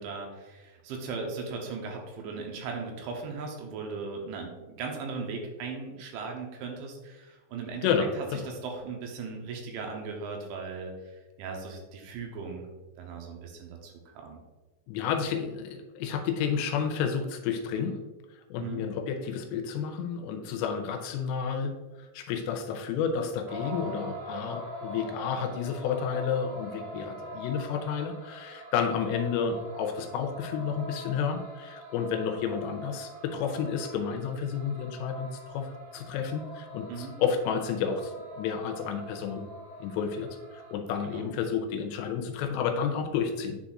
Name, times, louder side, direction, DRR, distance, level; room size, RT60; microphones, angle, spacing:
voice 1, 0.0-7.9 8.2-12.7 13.0-14.4 18.6-18.9 36.9-37.2 41.1-41.3, right 4 dB, 85° right, 1 dB, 3.3 m, -38 dB
voice 2, 7.8-8.4 14.9-18.0 18.3-39.5 39.8-43.6, left 7 dB, 85° left, 6 dB, 2.7 m, -31 dB
sound 1, 23.5-40.7, equal, 70° right, 1.4 m, -43 dB
9.9 x 4.1 x 2.5 m, 1.2 s
omnidirectional pair, 5.3 m